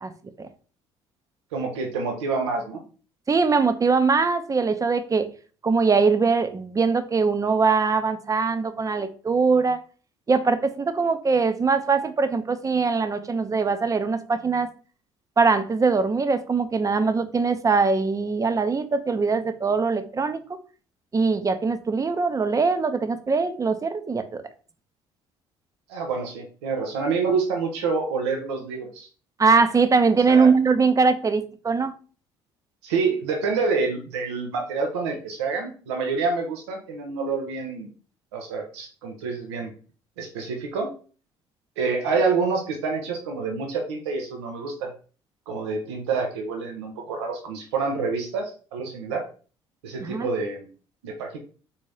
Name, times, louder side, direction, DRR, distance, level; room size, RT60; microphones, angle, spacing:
voice 1, 1.5-2.8 25.9-29.1 30.3-30.5 32.8-37.9 38.3-39.7 40.2-40.9 41.8-44.9 45.5-49.2 49.8-50.7 51.0-51.4, right 4 dB, 85° right, 2 dB, 0.5 m, -27 dB
voice 2, 3.3-5.3 5.6-9.8 10.3-14.7 15.4-20.4 21.1-24.4 29.4-31.9 50.0-50.3, right 4 dB, 25° right, 11 dB, 0.5 m, -22 dB
3.5 x 2.7 x 3.2 m, 0.39 s
hypercardioid pair, 60°, 14 cm